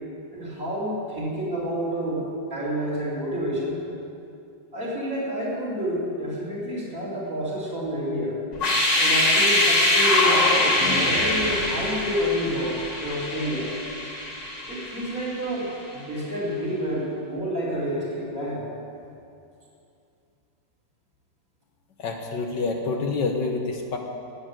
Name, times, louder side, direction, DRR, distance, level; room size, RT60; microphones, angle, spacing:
voice 1, 0.3-3.8 4.7-8.4 9.0-10.4 10.8-13.7 14.7-18.6, equal, 45° right, -7 dB, 4.0 m, -29 dB
sound 1, 8.5-15.4, left 1 dB, 40° left, 2.3 m, -23 dB
voice 2, 22.0-24.0, left 4 dB, 65° left, 2 dB, 1.7 m, -27 dB
12.5 x 8.5 x 9.1 m, 2.5 s
omnidirectional pair, 2.1 m